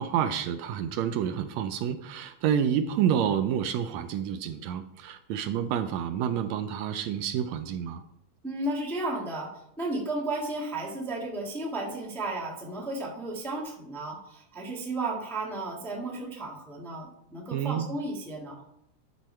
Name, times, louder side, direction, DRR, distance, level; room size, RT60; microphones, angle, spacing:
voice 1, 0.0-8.0 17.5-17.9, right 9 dB, 80° right, 9 dB, 1.8 m, -29 dB
voice 2, 8.4-18.6, right 2 dB, ahead, -1 dB, 0.8 m, -34 dB
11.0 x 6.2 x 4.4 m, 0.78 s
omnidirectional pair, 3.4 m